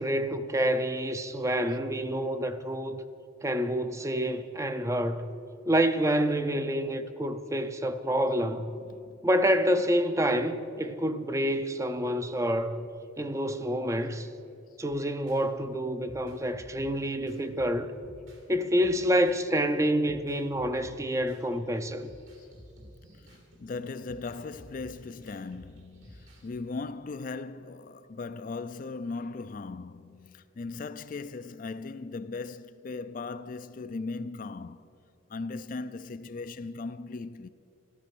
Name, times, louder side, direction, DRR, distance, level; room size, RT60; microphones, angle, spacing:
voice 1, 0.0-3.0 3.4-5.3 5.7-8.7 9.2-12.8 13.2-14.3 14.8-17.9 18.5-22.1, equal, 15° right, 0.5 m, -28 dB
voice 2, 8.8-9.2 22.4-22.5 23.1-34.9 35.3-37.5, left 3 dB, 40° left, 0.3 m, -38 dB
sound 1, 15.3-15.5 16.0-18.5 18.8-26.5, equal, 70° right, 3.1 m, -52 dB
14.0 x 13.5 x 6.1 m
head